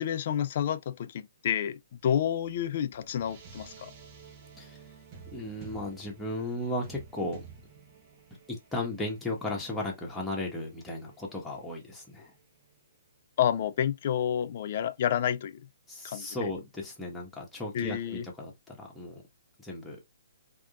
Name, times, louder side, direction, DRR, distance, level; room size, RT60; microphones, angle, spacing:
voice 1, 0.0-3.9 13.4-15.6 16.0-16.4 17.7-18.3, left 9 dB, 45° left, 0.4 m, -29 dB
sound 1, 2.9-12.8, right 5 dB, 35° right, 0.9 m, -53 dB
voice 2, 5.3-7.5 8.5-12.3 15.9-19.2 19.6-20.0, left 1 dB, 5° left, 1.4 m, -35 dB
3.4 x 2.8 x 2.4 m
figure-of-eight pair, 130°, 0 cm